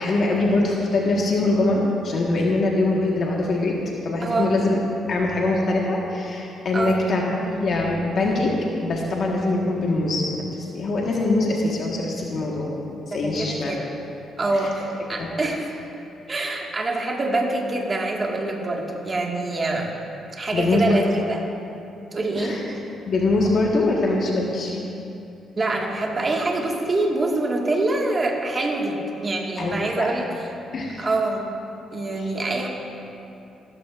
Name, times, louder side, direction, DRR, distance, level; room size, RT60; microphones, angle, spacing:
voice 1, 0.0-3.7 4.0-4.8 5.1-8.5 8.8-10.4 10.7-12.7 13.1-13.8 14.5-14.7 15.2-15.3 20.5-21.0 22.4-22.6 23.1-24.8 29.6-30.2 30.7-31.0 32.2-32.3, left 2 dB, 55° left, -2 dB, 1.4 m, -23 dB
voice 2, 4.2-4.5 6.7-7.0 13.2-13.9 14.4-15.7 16.3-19.9 20.3-21.5 22.1-22.8 25.5-30.5 31.0-31.5 31.9-32.7, right 2 dB, 35° right, 0 dB, 1.7 m, -25 dB
16.0 x 13.0 x 2.5 m, 2.8 s
cardioid pair, 90°, 0 cm